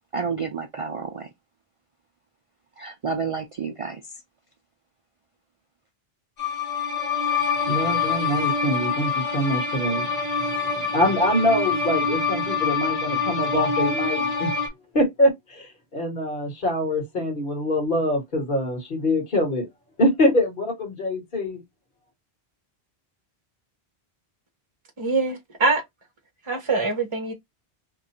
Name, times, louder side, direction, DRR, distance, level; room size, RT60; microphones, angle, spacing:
voice 1, 0.1-1.3 2.8-4.0, right 5 dB, 45° right, 0.4 m, -30 dB
sound 1, 6.4-14.7, left 5 dB, 40° left, 1.1 m, -25 dB
voice 2, 7.7-10.1 10.7-14.5 14.9-19.7 20.0-21.6, left 1 dB, 55° left, 1.6 m, -24 dB
voice 3, 25.0-25.8 26.5-27.3, right 3 dB, 30° right, 0.8 m, -23 dB
3.0 x 2.5 x 4.2 m
omnidirectional pair, 1.0 m